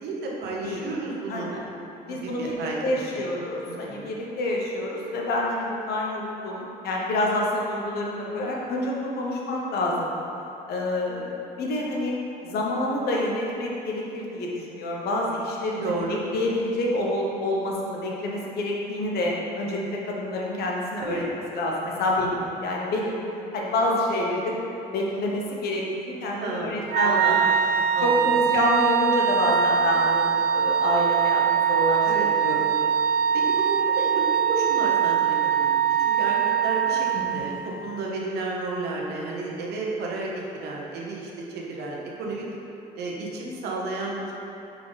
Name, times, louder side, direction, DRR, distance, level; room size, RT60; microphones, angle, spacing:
voice 1, 0.0-1.5 2.1-2.8 3.1-3.3 3.7-4.2 15.8-16.2 21.0-21.2 22.1-22.2 26.4-27.4 27.9-28.2 32.1-32.3 33.3-42.5 42.9-44.3, right 3 dB, 75° right, -2 dB, 1.1 m, -32 dB
voice 2, 1.3-1.6 2.1-10.1 10.7-12.2 12.4-16.0 16.3-21.2 21.5-23.2 23.5-24.6 24.9-27.4 28.0-32.7 37.1-37.4, left 1 dB, 70° left, -2 dB, 1.1 m, -27 dB
Wind instrument woodwind instrument, 26.9-37.7, right 8 dB, 60° right, 0.4 m, -22 dB
5.2 x 4.6 x 4.0 m, 3.0 s
cardioid pair, 110°, 17 cm